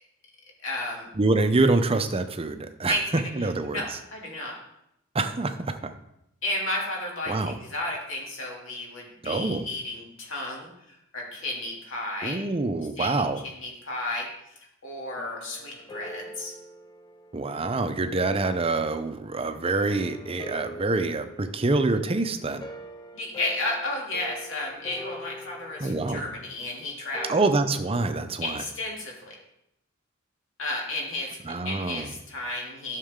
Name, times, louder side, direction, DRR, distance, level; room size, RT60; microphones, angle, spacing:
voice 1, 0.6-1.1 2.9-3.2 3.6-4.6 6.4-7.3 7.6-12.4 13.0-13.3 13.5-16.5 23.1-27.5 28.4-29.4 30.6-31.4 31.6-33.0, left 2 dB, 70° left, -2 dB, 2.7 m, -33 dB
voice 2, 1.1-3.0 3.3-3.8 5.1-5.9 7.3-7.6 9.2-9.7 12.2-13.4 17.3-22.6 25.8-26.2 27.3-28.6 31.5-32.1, right 3 dB, 30° right, 8 dB, 0.6 m, -26 dB
sound 1, 15.1-18.1 19.4-28.6, equal, 20° left, 0.7 m, -44 dB
12.0 x 6.5 x 3.7 m, 0.81 s
head